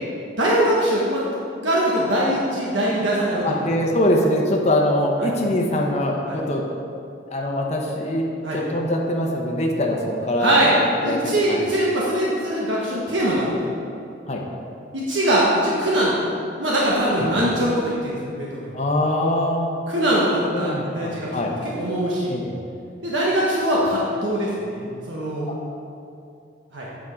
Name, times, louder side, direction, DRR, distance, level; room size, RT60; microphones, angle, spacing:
voice 1, 0.4-1.4 1.6-3.7 5.2-5.3 6.3-6.4 8.4-8.6 10.4-10.7 11.0-13.5 14.9-16.1 16.6-18.8 19.9-22.3 23.0-25.5 26.7-26.9, right 1 dB, 75° right, -5 dB, 1.4 m, -22 dB
voice 2, 3.4-6.6 7.3-8.2 8.5-10.6 11.0-11.6 14.3-14.4 17.2-17.4 18.7-19.7 20.5-21.5 22.2-22.5, left 1 dB, 35° left, -1 dB, 0.9 m, -23 dB
8.5 x 6.3 x 5.1 m, 2.6 s
head